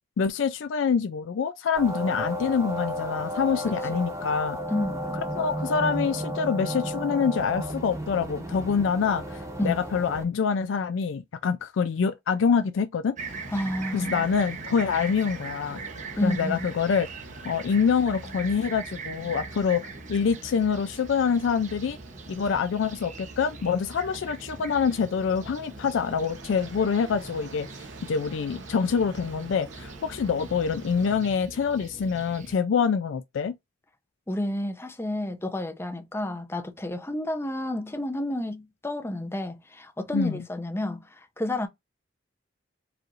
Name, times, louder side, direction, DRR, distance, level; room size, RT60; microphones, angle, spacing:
voice 1, 0.2-4.6 5.4-13.1 13.9-15.8 16.2-17.1 17.4-22.0 22.3-27.7 28.0-33.5 40.1-40.4, left 6 dB, 85° left, 0.4 m, -26 dB
sound 1, 1.8-10.2, equal, 15° right, 0.9 m, -33 dB
voice 2, 4.7-5.0 9.6-9.8 13.5-14.3 16.2-16.7 34.3-41.7, left 1 dB, 15° left, 0.6 m, -30 dB
Fixed-wing aircraft airplane, 13.2-32.5, right 4 dB, 40° right, 0.7 m, -41 dB
sound 2, 13.2-31.2, right 2 dB, 75° right, 1.0 m, -47 dB
4.8 x 2.5 x 3.0 m
head